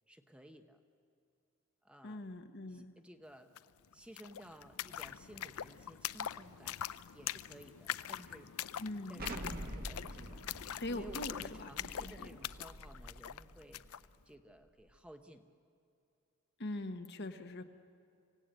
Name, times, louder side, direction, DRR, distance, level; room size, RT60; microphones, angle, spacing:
voice 1, 0.1-0.8 1.8-2.3 2.7-3.5 3.9-6.8 7.1-8.5 9.1-15.5, equal, 5° right, 6 dB, 0.9 m, -56 dB
voice 2, 2.0-2.9 8.8-9.3 10.8-11.7 12.0-12.3 16.6-17.6, left 1 dB, 50° left, 7 dB, 1.2 m, -42 dB
sound 1, 3.6-3.7 3.9-14.1, left 10 dB, 75° left, 0.5 m, -43 dB
Explosion, 9.2-13.9, right 1 dB, 45° right, 1.6 m, -47 dB
26.0 x 16.5 x 9.0 m, 2.6 s
head